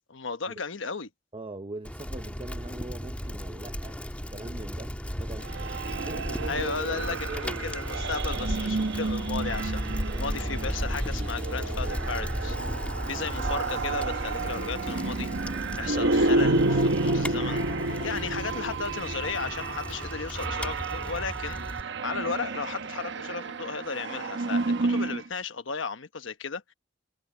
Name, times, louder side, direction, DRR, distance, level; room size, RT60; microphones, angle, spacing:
voice 1, 0.1-1.1 6.5-26.7, left 5 dB, 75° left, 1.2 m, -35 dB
voice 2, 1.3-4.0 4.3-4.9 5.2-5.5 6.0-6.7 6.9-7.6 13.1-13.3, right 2 dB, 30° right, 0.8 m, -42 dB
Bicycle, 1.8-21.8, equal, 5° left, 1.8 m, -35 dB
sound 1, 5.4-25.3, right 3 dB, 65° right, 0.9 m, -30 dB
sound 2, 10.4-21.6, left 5 dB, 35° left, 0.9 m, -48 dB
head